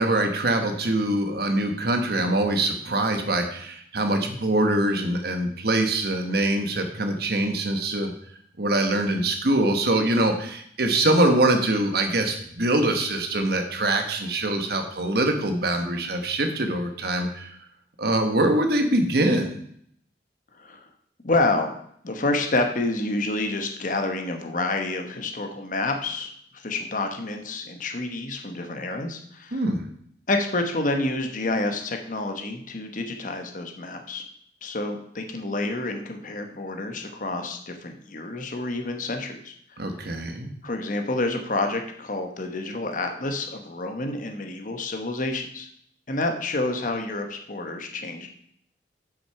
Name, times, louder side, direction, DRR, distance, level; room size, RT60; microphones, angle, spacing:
voice 1, 0.0-8.1 8.6-17.5 18.0-19.6 29.5-29.8 39.8-40.5, right 1 dB, 60° right, 6 dB, 1.3 m, -23 dB
voice 2, 20.5-20.9 21.2-21.7 22.0-29.6 30.3-34.2 34.6-39.8 40.6-45.7 46.1-48.3, left 2 dB, 45° left, 5 dB, 1.1 m, -28 dB
7.3 x 6.4 x 5.7 m, 0.67 s
head